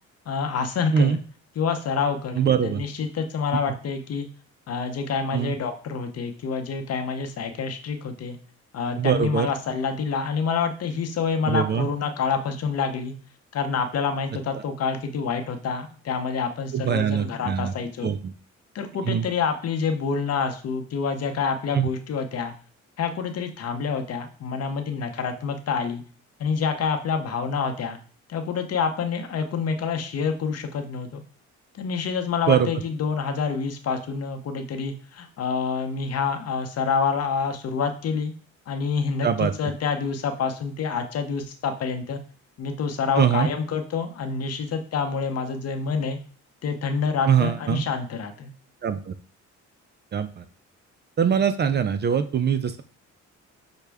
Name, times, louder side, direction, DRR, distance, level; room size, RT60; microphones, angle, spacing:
voice 1, 0.3-1.2 1.6-4.3 4.7-8.4 8.7-13.2 13.5-18.1 18.7-22.5 23.0-26.0 26.4-28.0 28.3-31.2 31.7-38.3 38.7-42.2 42.6-46.2 46.6-48.5, left 5 dB, 55° left, 6 dB, 0.7 m, -27 dB
voice 2, 2.4-2.8 5.3-5.5 9.0-9.5 11.5-11.9 16.7-17.7 18.0-18.3 19.1-19.3 21.7-21.9 32.5-32.7 39.2-39.7 43.2-43.5 47.3-47.8 48.8-49.1 50.1-50.4 51.2-52.8, right 8 dB, 35° right, 11 dB, 0.4 m, -23 dB
6.0 x 2.2 x 3.4 m, 0.42 s
cardioid pair, 90°, 30 cm